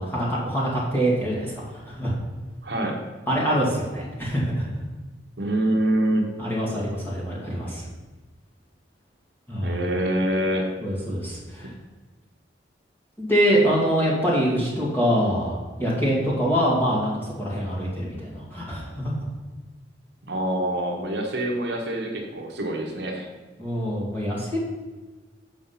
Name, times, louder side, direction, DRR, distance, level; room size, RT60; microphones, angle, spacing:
voice 1, 0.0-2.1 3.3-4.7 6.4-7.8 9.5-9.8 10.8-11.7 13.2-19.1 23.6-24.6, equal, 10° left, -6 dB, 2.0 m, -24 dB
voice 2, 2.6-3.0 5.4-6.3 9.6-10.7 11.6-11.7 20.3-23.3, right 1 dB, 60° right, 1 dB, 1.1 m, -25 dB
7.6 x 4.8 x 5.6 m, 1.3 s
head